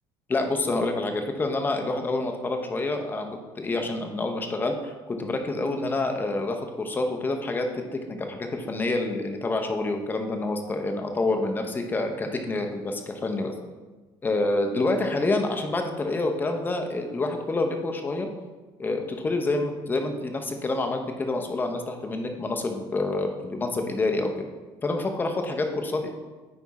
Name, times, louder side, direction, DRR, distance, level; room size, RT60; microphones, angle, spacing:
voice 1, 0.3-13.5 14.2-18.3 18.8-24.5 24.8-26.1, left 2 dB, 20° left, 4 dB, 0.7 m, -27 dB
9.5 x 3.5 x 4.1 m, 1.3 s
cardioid pair, 135°, 10 cm